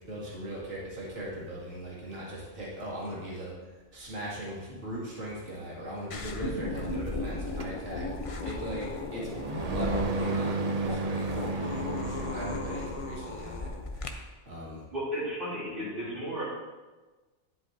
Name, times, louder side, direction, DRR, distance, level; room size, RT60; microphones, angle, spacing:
voice 1, 0.1-3.5 3.9-9.3 9.7-14.0 14.5-14.8, equal, 60° right, -6 dB, 2.5 m, -39 dB
sound 1, 6.1-14.1, left 3 dB, 40° left, 0.5 m, -36 dB
sound 2, 7.6-13.2, right 3 dB, 75° right, 0.3 m, -33 dB
voice 2, 14.9-16.4, equal, 40° right, -10 dB, 3.2 m, -34 dB
10.5 x 7.6 x 2.7 m, 1.2 s
omnidirectional pair, 1.4 m